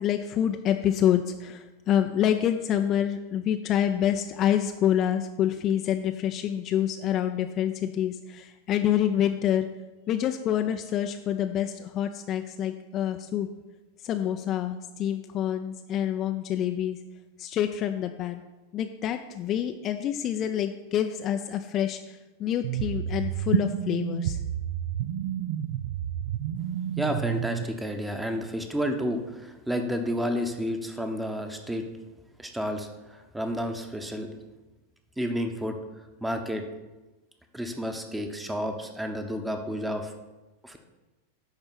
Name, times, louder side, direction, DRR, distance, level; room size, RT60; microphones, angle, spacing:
voice 1, 0.0-9.7 10.1-13.5 14.0-17.0 17.4-18.4 18.7-24.4, left 10 dB, 35° left, 6 dB, 0.5 m, -27 dB
sound 1, 22.6-27.6, right 10 dB, 55° right, 0.4 m, -30 dB
voice 2, 27.0-31.8 32.4-34.3 35.2-35.8 36.2-36.6 37.5-40.1 40.6-40.8, equal, 5° right, 5 dB, 1.0 m, -31 dB
10.5 x 4.4 x 6.0 m, 1.1 s
figure-of-eight pair, 90°, 0 cm